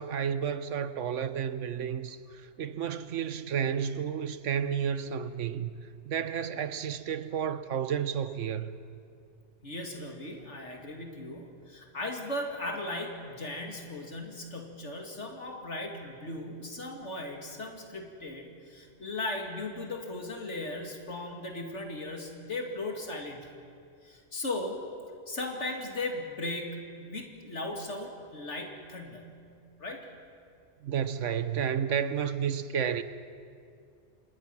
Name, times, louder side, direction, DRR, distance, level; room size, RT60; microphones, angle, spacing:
voice 1, 0.0-5.7 6.0-8.8 30.8-33.0, right 8 dB, 85° right, 1.2 m, -31 dB
voice 2, 9.6-23.5 24.0-24.8 25.3-29.3 29.8-30.1, left 2 dB, 75° left, 2.9 m, -37 dB
26.5 x 20.0 x 6.0 m
omnidirectional pair, 1.2 m